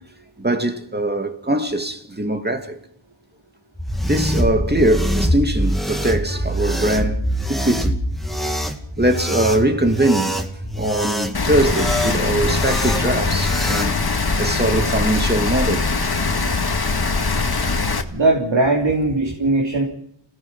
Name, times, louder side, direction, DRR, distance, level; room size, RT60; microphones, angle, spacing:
voice 1, 0.4-2.8 4.0-7.2 7.5-8.0 9.0-10.4 10.8-16.2, right 1 dB, 20° right, 2.6 m, -21 dB
sound 1, 3.8-13.9, equal, ahead, 2.5 m, -24 dB
Rain, 11.3-18.0, left 3 dB, 50° left, 2.0 m, -21 dB
voice 2, 18.1-19.8, right 2 dB, 60° right, 3.6 m, -19 dB
27.5 x 17.5 x 5.7 m
wide cardioid pair, 85°, 47 cm